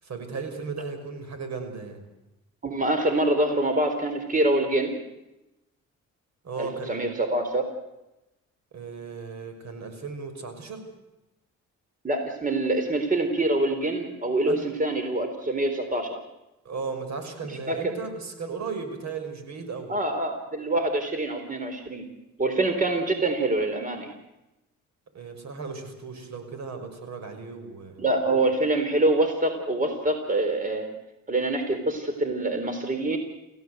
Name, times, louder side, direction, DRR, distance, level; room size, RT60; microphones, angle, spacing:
voice 1, 0.0-2.0 6.4-7.1 8.7-10.9 14.5-14.6 16.6-19.9 25.1-28.4, right 4 dB, 65° right, 8 dB, 5.9 m, -36 dB
voice 2, 2.6-5.0 6.6-7.6 12.0-16.2 17.7-17.8 19.9-22.1 22.4-24.1 28.0-30.9 31.3-33.2, right 2 dB, 25° right, 6 dB, 3.9 m, -25 dB
28.5 x 16.0 x 8.0 m, 0.97 s
cardioid pair, 90°, 30 cm